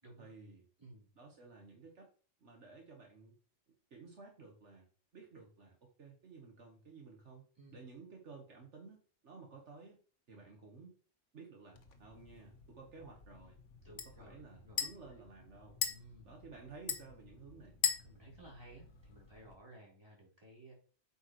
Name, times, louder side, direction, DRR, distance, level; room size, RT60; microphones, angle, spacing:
voice 1, 0.2-0.6 1.2-2.1 2.4-3.4 3.9-4.9 5.1-7.4 7.7-10.0 10.3-11.0 11.3-13.6 13.9-15.8 16.2-17.8, right 4 dB, 70° right, 1 dB, 1.7 m, -54 dB
sound 1, 11.7-19.6, left 7 dB, 80° left, 1.4 m, -42 dB
voice 2, 13.8-14.8 15.9-16.4 18.0-20.7, right 1 dB, 20° right, -4 dB, 3.6 m, -57 dB
8.4 x 5.6 x 3.0 m, 0.39 s
omnidirectional pair, 1.3 m